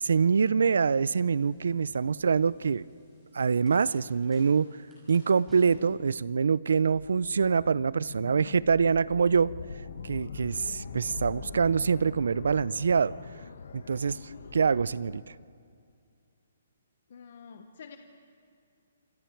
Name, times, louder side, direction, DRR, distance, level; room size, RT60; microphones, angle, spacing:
voice 1, 0.0-2.8 3.3-4.8 5.1-9.5 10.0-13.1 13.7-15.3, right 5 dB, 70° right, 21 dB, 0.5 m, -25 dB
sound 1, 0.9-6.0, equal, 10° right, 5.4 m, -54 dB
sound 2, 6.9-15.2, left 5 dB, 60° left, 1.4 m, -42 dB
voice 2, 17.1-18.0, left 6 dB, 40° left, 6 dB, 1.1 m, -47 dB
26.5 x 26.0 x 4.5 m, 2.3 s
hypercardioid pair, 180°, 0 cm